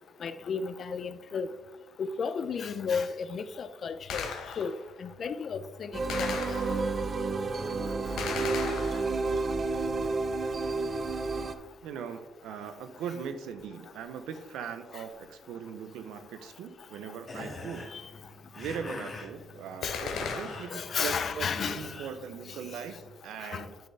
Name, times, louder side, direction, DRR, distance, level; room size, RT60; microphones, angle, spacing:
voice 1, 0.2-1.5 2.0-6.4 14.9-15.0 17.9-18.0 19.8-20.0 20.7-21.9 23.4-23.7, left 6 dB, 55° left, 0.5 m, -33 dB
Gunshot gunfire, 4.1-4.9 6.1-7.1 8.2-9.4 19.8-20.9, left 6 dB, 80° left, 0.9 m, -37 dB
sound 1, 5.9-11.5, right 3 dB, 40° right, 0.6 m, -30 dB
voice 2, 11.8-18.1 18.6-23.0 23.2-23.8, right 7 dB, 85° right, 0.7 m, -40 dB
sound 2, 17.2-23.1, left 2 dB, 35° left, 1.8 m, -44 dB
10.5 x 4.3 x 3.3 m
cardioid pair, 90°, 0 cm